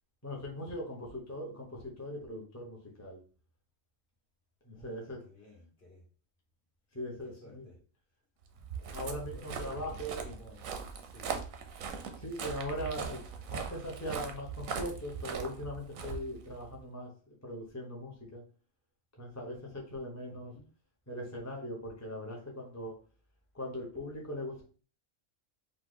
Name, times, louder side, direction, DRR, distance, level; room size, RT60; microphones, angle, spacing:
voice 1, 0.2-3.2 4.6-5.2 6.9-7.6 8.8-10.2 12.2-13.2 13.5-18.4 19.2-20.5 21.1-22.9 23.5-24.6, equal, 15° left, -1 dB, 0.9 m, -40 dB
voice 2, 4.7-6.0 7.2-7.8 9.3-10.6 11.0-11.4 20.4-20.7, left 1 dB, 50° left, -3 dB, 1.9 m, -55 dB
Walk footsteps, 8.5-16.8, right 6 dB, 90° right, 1.2 m, -40 dB
5.0 x 2.5 x 3.9 m, 0.38 s
omnidirectional pair, 1.4 m